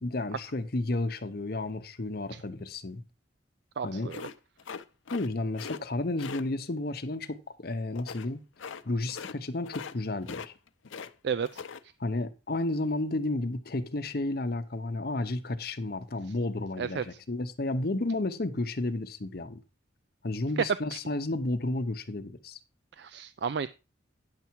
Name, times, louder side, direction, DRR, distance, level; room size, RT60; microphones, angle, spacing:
voice 1, 0.0-3.0 3.8-4.1 5.1-8.4 8.8-10.5 12.0-19.6 20.2-22.6, left 2 dB, 50° left, 0.8 m, -32 dB
voice 2, 3.8-4.2 11.2-11.6 16.8-17.2 20.9-21.0 23.0-23.7, right 6 dB, 60° right, 0.4 m, -33 dB
sound 1, 4.1-5.3 5.5-5.8 6.2-6.4 7.9-8.3 8.6-8.8 9.1-9.4 9.6-10.0 10.2-11.1 11.4-11.8, left 6 dB, 90° left, 0.6 m, -41 dB
9.7 x 7.0 x 4.5 m
head